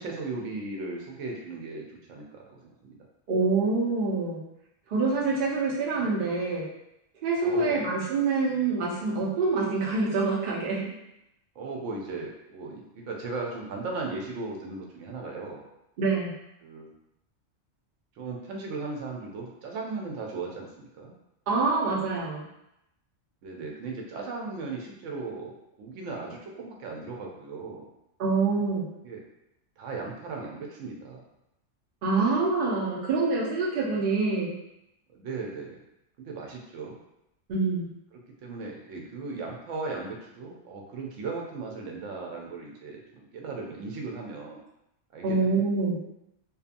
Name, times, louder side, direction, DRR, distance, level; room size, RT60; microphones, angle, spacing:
voice 1, 0.0-3.0 7.4-7.9 11.6-15.6 16.6-16.9 18.2-21.1 23.4-27.9 29.0-29.2 29.8-31.3 35.1-35.8 36.2-37.0 38.4-44.6 45.1-45.6, right 3 dB, 90° right, -1 dB, 0.9 m, -37 dB
voice 2, 3.3-4.4 4.9-6.6 7.2-10.9 16.0-16.3 21.5-22.4 28.2-28.9 32.0-34.5 37.5-37.9 45.2-45.9, right 3 dB, 55° right, -4 dB, 0.7 m, -26 dB
2.7 x 2.2 x 2.5 m, 0.84 s
omnidirectional pair, 1.2 m